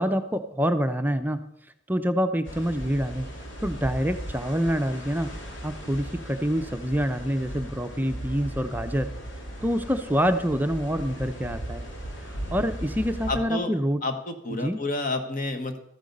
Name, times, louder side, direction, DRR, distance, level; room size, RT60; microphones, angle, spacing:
voice 1, 0.0-1.4 1.9-3.3 3.6-5.3 5.6-9.1 9.6-11.8 12.2-14.0 14.5-14.8, equal, 10° right, 8 dB, 0.6 m, -26 dB
sound 1, 2.4-13.4, right 1 dB, 85° left, 2.6 m, -37 dB
voice 2, 13.3-13.7 14.0-15.8, left 2 dB, 45° left, 7 dB, 1.3 m, -30 dB
13.5 x 8.8 x 5.4 m, 0.76 s
head